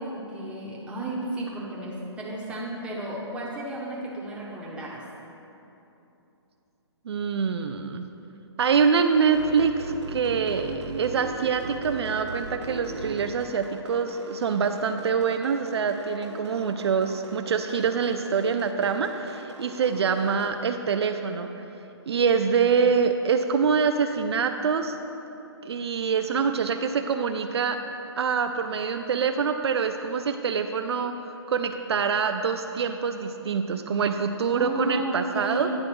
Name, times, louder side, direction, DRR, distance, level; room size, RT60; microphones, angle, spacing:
voice 1, 0.0-5.0 34.5-35.8, right 1 dB, 10° right, -5 dB, 1.1 m, -33 dB
voice 2, 7.1-8.1 8.6-21.5 22.1-24.9 25.6-27.8 28.2-31.1 31.5-35.7, right 6 dB, 65° right, 7 dB, 0.4 m, -25 dB
sound 1, 9.3-20.5, right 4 dB, 85° right, 0.9 m, -39 dB
9.8 x 3.8 x 6.0 m, 2.9 s
hypercardioid pair, 140°, 15 cm